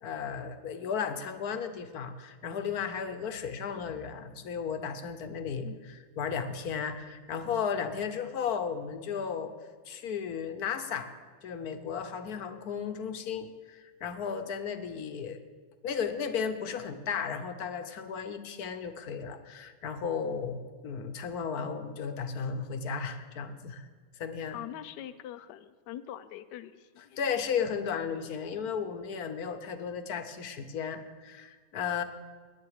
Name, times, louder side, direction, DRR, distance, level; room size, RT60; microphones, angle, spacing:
voice 1, 0.0-9.5 9.9-11.1 11.4-15.4 15.8-23.8 24.2-24.6 27.2-32.0, left 6 dB, 65° left, 9 dB, 1.4 m, -34 dB
voice 2, 24.5-27.2, left 11 dB, 85° left, 13 dB, 1.2 m, -43 dB
18.0 x 10.5 x 4.9 m, 1.5 s
omnidirectional pair, 1.8 m